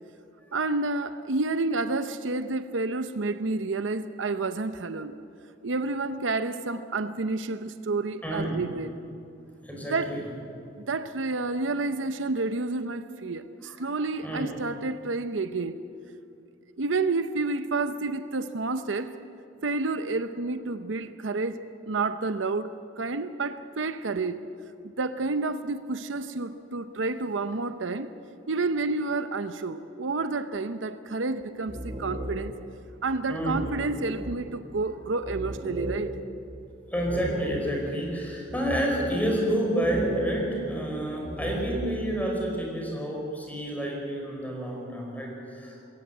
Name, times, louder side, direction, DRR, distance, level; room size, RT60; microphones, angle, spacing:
voice 1, 0.5-5.1 5.6-8.9 9.8-10.2 10.8-15.8 16.8-19.1 19.6-24.4 24.8-28.1 28.5-32.5 33.0-36.1, right 3 dB, 75° right, 11 dB, 0.7 m, -30 dB
voice 2, 8.2-8.6 9.6-10.3 13.6-13.8 14.2-14.5 33.3-33.6 36.9-45.9, right 1 dB, 10° left, -1 dB, 5.0 m, -29 dB
sound 1, 31.4-32.8 33.1-33.2 33.5-38.0 38.5-39.3 39.8-42.1, equal, 30° right, 1.9 m, -35 dB
21.0 x 17.5 x 7.7 m, 2.6 s
head